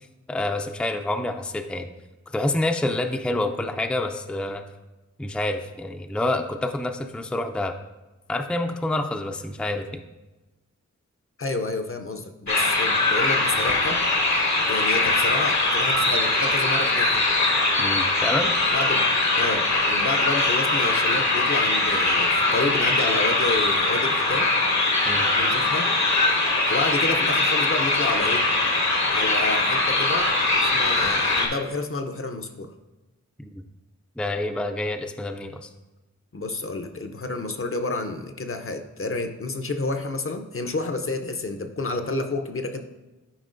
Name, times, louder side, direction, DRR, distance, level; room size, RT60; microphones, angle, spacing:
voice 1, 0.3-1.9 2.3-4.6 5.2-7.7 8.3-10.0 17.8-18.5 25.0-25.3 33.4-33.6 34.2-35.7, left 2 dB, 5° left, 5 dB, 0.4 m, -27 dB
voice 2, 11.4-14.0 14.7-17.3 18.7-19.1 19.4-24.5 25.3-25.9 26.7-28.5 29.1-30.3 30.6-32.7 36.3-42.8, left 3 dB, 45° left, 6 dB, 0.6 m, -30 dB
sound 1, 12.5-31.5, left 2 dB, 70° left, 1.1 m, -22 dB
11.0 x 4.8 x 2.5 m, 1.1 s
wide cardioid pair, 60°, 29 cm